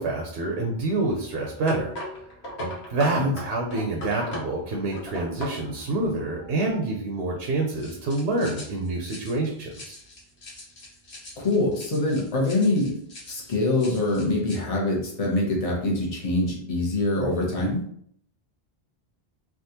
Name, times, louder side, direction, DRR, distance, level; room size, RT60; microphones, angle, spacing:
voice 1, 0.0-1.9 2.6-10.0, right 2 dB, 75° right, 1 dB, 0.8 m, -27 dB
sound 1, 0.6-6.8 7.8-14.6, left 1 dB, 90° left, 1.2 m, -41 dB
voice 2, 11.4-12.9 13.3-17.8, left 2 dB, 35° left, -2 dB, 0.8 m, -24 dB
3.4 x 2.4 x 2.8 m, 0.66 s
omnidirectional pair, 1.1 m